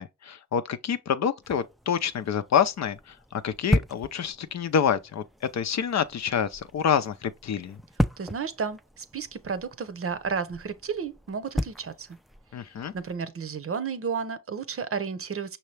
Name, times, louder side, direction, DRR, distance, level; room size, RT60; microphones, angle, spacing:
voice 1, 0.0-5.2 5.5-7.8 12.5-12.9, left 8 dB, 65° left, 0.6 m, -27 dB
sound 1, 1.4-13.2, equal, ahead, 0.4 m, -35 dB
voice 2, 8.2-12.1 12.9-15.6, right 6 dB, 50° right, 0.7 m, -32 dB
5.6 x 2.9 x 3.2 m
cardioid pair, 50°, 29 cm